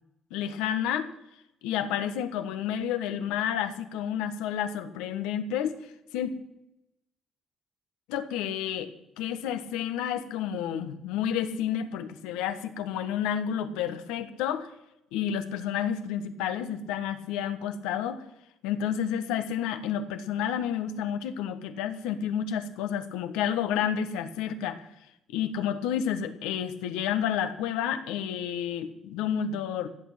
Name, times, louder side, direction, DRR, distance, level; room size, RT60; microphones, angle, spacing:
voice 1, 0.3-1.1 1.6-5.8 6.1-6.3 8.1-8.9 9.2-14.7 15.1-18.2 18.6-24.8 25.3-29.9, left 9 dB, 85° left, 9 dB, 1.3 m, -30 dB
16.5 x 8.3 x 9.0 m, 0.85 s
supercardioid pair, 55°, 0 cm